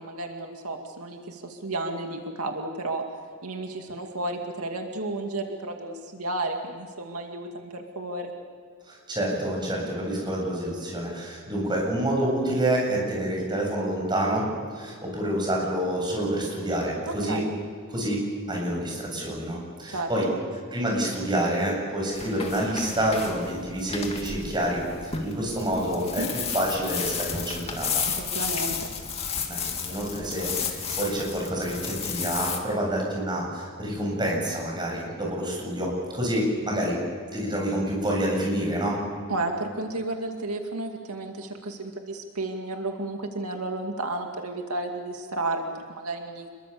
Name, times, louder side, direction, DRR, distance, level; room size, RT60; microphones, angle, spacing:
voice 1, 0.0-3.0 3.4-8.3 17.1-17.5 19.9-20.3 26.0-26.3 28.3-28.9 39.3-46.5, right 2 dB, 85° right, 3 dB, 2.3 m, -32 dB
voice 2, 8.9-14.5 14.7-17.4 17.9-20.3 20.7-28.1 29.5-37.0 37.3-39.0, right 1 dB, 20° right, -1 dB, 8.0 m, -28 dB
sound 1, 22.1-32.6, left 6 dB, 25° left, 2.5 m, -32 dB
28.0 x 22.5 x 7.0 m, 2.1 s
head